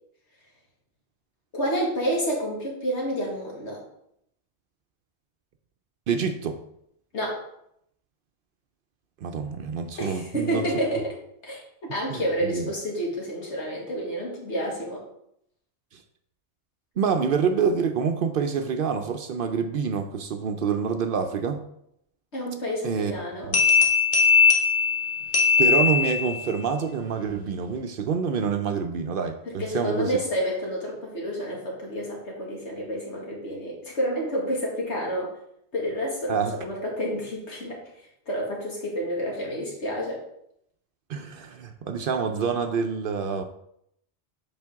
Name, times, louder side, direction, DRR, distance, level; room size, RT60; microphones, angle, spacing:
voice 1, 1.5-3.8 7.1-7.4 10.0-11.1 11.4-15.0 22.3-23.5 29.5-35.3 35.7-37.8 38.3-40.2, equal, 80° left, -3 dB, 2.2 m, -29 dB
voice 2, 6.1-6.6 9.2-10.7 12.1-12.7 17.0-21.6 22.8-23.1 23.4-23.6 25.6-30.2 36.3-36.6 41.1-43.4, right 6 dB, 60° right, 7 dB, 0.7 m, -27 dB
sound 1, 23.5-26.5, left 5 dB, 50° left, 1.4 m, -20 dB
7.4 x 5.1 x 3.5 m, 0.75 s
omnidirectional pair, 1.2 m